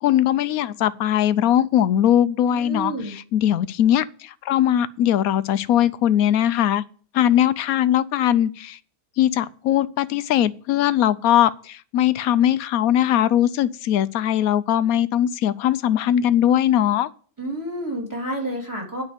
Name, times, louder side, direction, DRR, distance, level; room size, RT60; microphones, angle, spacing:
voice 1, 0.0-6.8 7.1-8.8 9.2-17.1, left 11 dB, 75° left, 1.1 m, -20 dB
voice 2, 2.5-3.1 17.4-19.0, right 1 dB, 10° right, 3.5 m, -29 dB
9.6 x 5.3 x 8.1 m
omnidirectional pair, 1.6 m